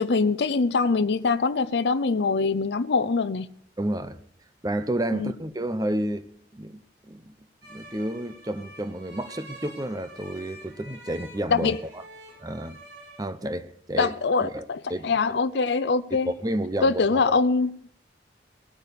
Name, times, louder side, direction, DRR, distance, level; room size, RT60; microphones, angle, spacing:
voice 1, 0.0-3.5 5.1-5.3 11.5-11.8 14.0-16.3 16.8-17.7, left 4 dB, 75° left, 0.6 m, -23 dB
voice 2, 3.8-4.2 4.6-6.3 6.5-7.4 7.7-12.0 12.4-12.8 13.2-14.1 14.4-15.2 16.2-17.2, right 1 dB, 20° right, 0.8 m, -31 dB
sound 1, 7.6-13.2, right 1 dB, 80° right, 5.0 m, -47 dB
18.0 x 9.0 x 6.8 m
head